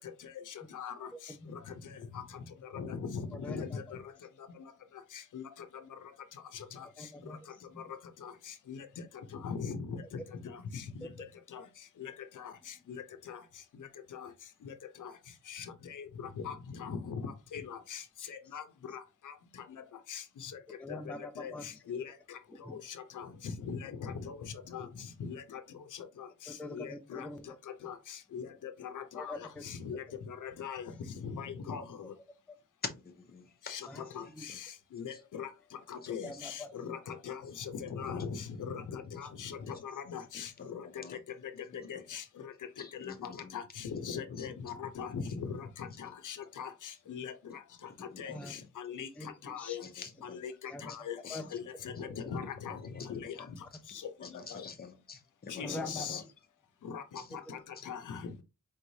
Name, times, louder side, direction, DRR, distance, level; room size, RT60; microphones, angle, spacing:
voice 1, 1.1-1.5 3.4-3.8 7.0-7.4 7.7-7.9 11.0-11.1 18.2-18.3 20.8-21.8 22.6-22.8 26.5-27.6 29.1-29.6 33.9-34.0 34.4-34.5 36.2-36.7 48.2-48.6 49.2-49.8 50.7-51.0 51.3-51.4 52.0-52.2 55.6-56.2 57.5-57.6, left 2 dB, 5° left, 0.3 m, -43 dB
voice 2, 2.7-3.2 3.5-3.8 5.3-5.4 8.2-8.3 8.7-8.8 9.4-10.0 10.7-10.8 11.5-11.6 12.0-12.1 12.4-12.5 12.9-13.0 13.3-13.4 14.1-14.2 15.0-15.1 15.5-15.6 15.9-16.0 16.4-16.5 16.8-17.2 17.5-18.0 18.3-18.6 20.1-20.5 21.4-21.5 21.9-22.0 23.2-23.3 23.7-24.4 24.7-24.9 25.2-25.6 26.2-26.3 26.7-27.3 27.8-27.9 28.3-28.5 28.9-29.3 29.6-30.8 31.2-31.8 33.7-33.8 34.2-34.5 34.9-35.5 35.9-40.8 41.9-42.2 43.0-43.1 43.5-46.7 47.1-47.3 48.2-48.6 48.8-49.1 49.5-49.8 50.4-50.5 50.8-52.8 53.1-53.3 54.5-54.6 55.5-56.2 56.9-57.0 57.5-57.6 57.9-58.2, left 7 dB, 75° left, 0.7 m, -40 dB
voice 3, 42.8-43.4 48.3-48.4 50.0-50.4 52.9-53.1 54.2-56.2, left 5 dB, 30° left, 0.7 m, -47 dB
4.6 x 3.1 x 2.7 m
wide cardioid pair, 180°, 31 cm